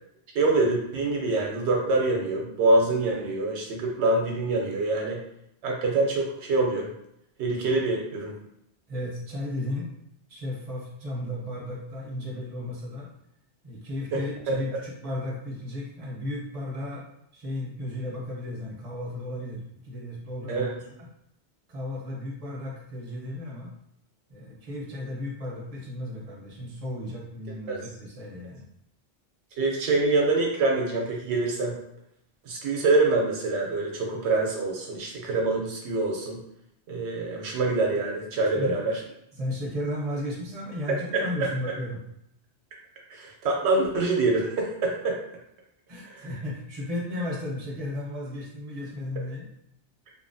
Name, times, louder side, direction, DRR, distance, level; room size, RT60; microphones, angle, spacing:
voice 1, 0.3-5.2 5.6-6.9 7.4-8.3 14.1-14.2 14.5-14.6 20.5-20.7 27.7-27.8 29.6-31.8 32.4-36.4 36.9-39.0 40.9-41.2 43.1-45.2 46.0-46.3, right 2 dB, 90° right, -1 dB, 0.9 m, -25 dB
voice 2, 8.9-9.9 10.3-13.1 13.6-17.0 17.3-20.7 21.7-23.8 24.3-28.6 38.5-38.8 39.3-42.0 45.9-49.4, left 1 dB, 40° right, -3 dB, 0.7 m, -34 dB
2.7 x 2.4 x 2.6 m, 0.78 s
omnidirectional pair, 1.1 m